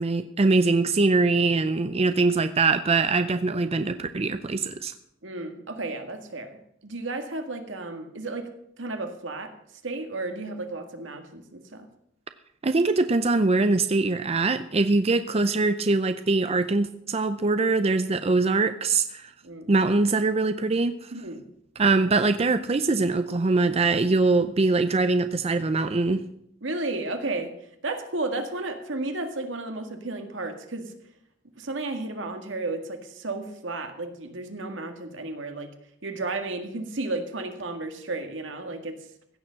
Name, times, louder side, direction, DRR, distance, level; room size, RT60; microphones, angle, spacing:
voice 1, 0.0-4.9 12.6-19.3 19.7-21.1 21.8-26.2, right 3 dB, 35° right, 10 dB, 0.5 m, -23 dB
voice 2, 5.2-9.5 9.8-11.9 19.4-19.7 21.1-21.4 26.6-27.5 27.8-30.9 31.6-35.7 36.0-39.0, right 2 dB, 80° right, 6 dB, 1.9 m, -33 dB
16.0 x 7.1 x 7.5 m, 0.74 s
head